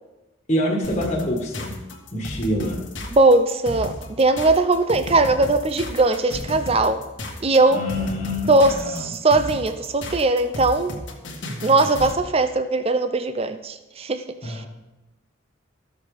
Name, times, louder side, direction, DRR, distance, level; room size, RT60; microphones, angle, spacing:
voice 1, 0.5-1.8 2.1-2.9 7.7-9.1 14.4-14.7, equal, 35° left, -3 dB, 1.7 m, -26 dB
sound 1, 0.8-12.2, left 1 dB, 65° left, 1.9 m, -34 dB
voice 2, 3.1-7.0 7.4-7.8 8.5-10.9 11.6-14.6, right 2 dB, 30° right, 9 dB, 0.5 m, -20 dB
14.0 x 7.1 x 5.0 m, 1.0 s
head